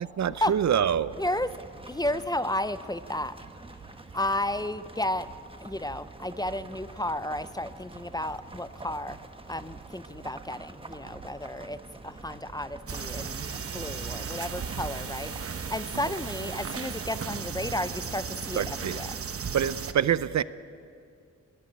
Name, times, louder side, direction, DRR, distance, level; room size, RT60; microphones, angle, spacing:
voice 1, 0.2-1.1 18.6-19.0 19.5-20.4, right 9 dB, 65° right, 16 dB, 0.6 m, -25 dB
sound 1, 1.1-19.3, right 2 dB, 20° right, 1.1 m, -47 dB
voice 2, 1.2-1.5 1.9-3.4 4.1-5.3 5.6-9.2 9.5-11.8 12.0-13.5 13.7-19.2, left 1 dB, 15° left, 14 dB, 0.5 m, -32 dB
sound 2, 12.9-19.9, right 6 dB, 50° right, 1.0 m, -36 dB
20.0 x 14.0 x 9.8 m, 2.4 s
wide cardioid pair, 120°, 30 cm